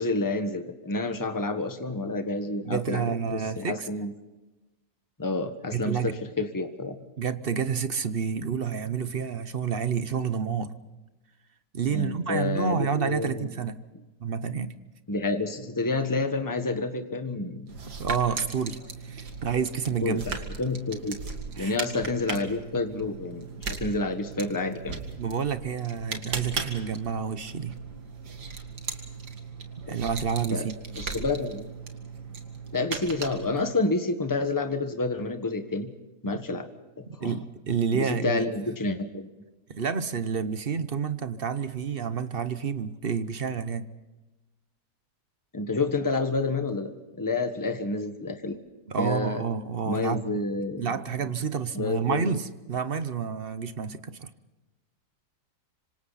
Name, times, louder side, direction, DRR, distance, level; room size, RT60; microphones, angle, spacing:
voice 1, 0.0-4.1 5.2-7.0 11.9-13.5 15.1-17.8 20.0-21.2 21.6-25.0 30.5-30.7 30.9-31.7 32.7-35.9 36.2-36.7 37.0-37.4 37.9-39.3 45.5-48.6 49.0-49.4 49.9-50.9 51.7-52.3, left 3 dB, 15° left, 7 dB, 1.4 m, -29 dB
voice 2, 2.6-3.9 5.7-6.1 7.2-10.7 11.7-13.8 14.2-14.7 18.0-20.4 21.6-21.8 25.2-27.8 29.9-30.7 36.2-36.3 37.2-38.5 39.7-43.9 48.9-50.2 50.8-54.3, right 6 dB, 40° right, 12 dB, 1.0 m, -29 dB
sound 1, 17.7-33.8, right 4 dB, 85° right, 2.6 m, -38 dB
26.0 x 26.0 x 4.2 m, 1.1 s
omnidirectional pair, 1.7 m